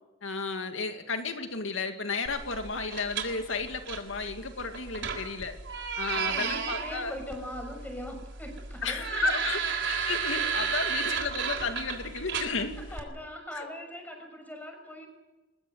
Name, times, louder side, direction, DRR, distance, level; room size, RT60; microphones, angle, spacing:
voice 1, 0.2-5.5 6.0-7.2 8.8-9.6 9.9-12.8 13.5-13.6, left 4 dB, 75° left, 6 dB, 2.3 m, -33 dB
sound 1, 2.3-13.0, right 6 dB, 60° right, 3.9 m, -34 dB
voice 2, 6.1-9.3 10.9-11.0 12.6-15.1, equal, 10° left, 4 dB, 6.1 m, -41 dB
23.0 x 21.5 x 8.1 m, 1.1 s
head